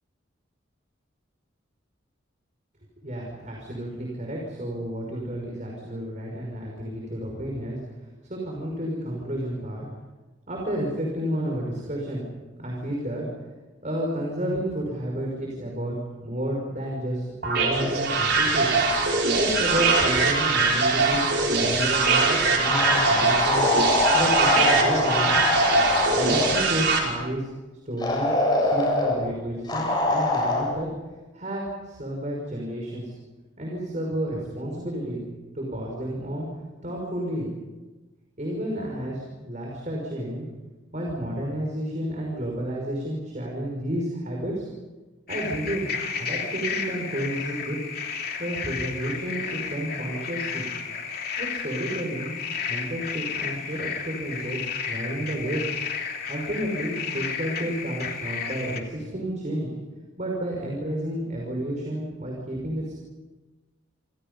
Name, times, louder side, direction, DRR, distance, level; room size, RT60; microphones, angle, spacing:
voice 1, 3.0-7.8 8.2-9.9 10.5-12.2 12.6-13.3 13.8-15.9 16.2-18.7 19.4-23.7 24.1-25.4 26.1-27.5 27.9-30.9 31.3-33.1 33.6-35.2 35.5-36.5 36.8-37.5 38.4-40.5 40.9-44.7 45.3-47.8 48.4-50.7 51.4-52.3 52.7-55.7 56.3-59.7 60.2-62.9, right 1 dB, 40° right, -1 dB, 5.9 m, -31 dB
sound 1, 17.4-27.0, right 3 dB, 55° right, 5.6 m, -22 dB
sound 2, 22.6-26.6 28.0-29.2 29.7-30.6, left 2 dB, 20° left, 7.8 m, -23 dB
sound 3, 45.3-58.8, left 6 dB, 50° left, 2.9 m, -32 dB
29.5 x 27.5 x 5.6 m, 1.2 s
head